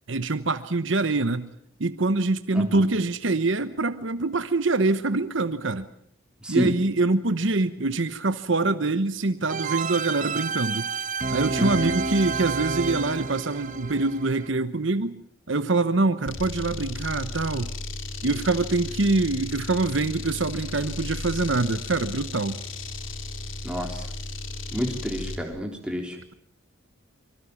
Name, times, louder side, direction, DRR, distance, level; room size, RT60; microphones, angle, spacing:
voice 1, 0.1-1.5 1.8-5.8 6.5-10.9 11.3-15.2 15.5-17.7 18.2-22.6, right 3 dB, 65° right, 11 dB, 1.1 m, -24 dB
voice 2, 2.5-2.8 6.4-6.7 11.6-11.9 23.6-24.0 24.7-26.2, equal, 5° right, 2 dB, 4.0 m, -29 dB
sound 1, 9.5-14.5, right 4 dB, 40° right, 1.3 m, -30 dB
sound 2, 16.3-25.5, left 2 dB, 70° left, 3.1 m, -35 dB
25.5 x 24.0 x 7.1 m, 0.65 s
head